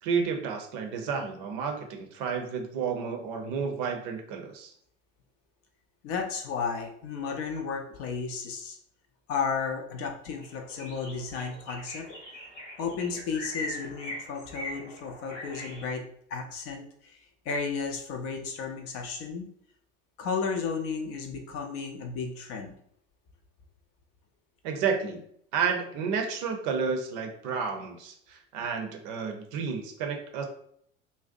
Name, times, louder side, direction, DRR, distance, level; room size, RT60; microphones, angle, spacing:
voice 1, 0.0-4.7 24.6-25.2 25.5-30.4, right 6 dB, 50° right, 4 dB, 0.6 m, -31 dB
voice 2, 6.0-8.8 9.3-12.0 12.8-17.2 17.5-19.5 20.2-22.7, left 5 dB, 40° left, 3 dB, 0.5 m, -33 dB
sound 1, 10.0-10.1 10.4-15.8, left 1 dB, 80° left, 0.9 m, -41 dB
2.5 x 2.1 x 2.5 m, 0.64 s
figure-of-eight pair, 70°, 36 cm